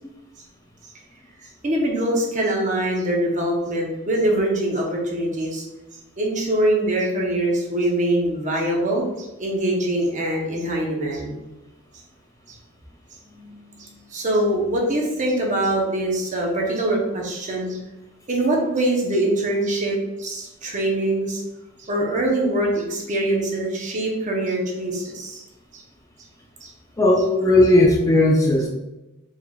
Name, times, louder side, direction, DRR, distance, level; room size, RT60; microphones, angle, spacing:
voice 1, 1.4-5.6 6.2-11.4 12.5-12.6 13.3-17.8 18.3-21.4 21.8-25.4 25.7-25.8 26.6-26.7, right 1 dB, 35° right, -1 dB, 0.8 m, -23 dB
voice 2, 27.0-28.7, left 1 dB, 15° left, -2 dB, 0.4 m, -16 dB
4.5 x 3.5 x 2.3 m, 1.0 s
head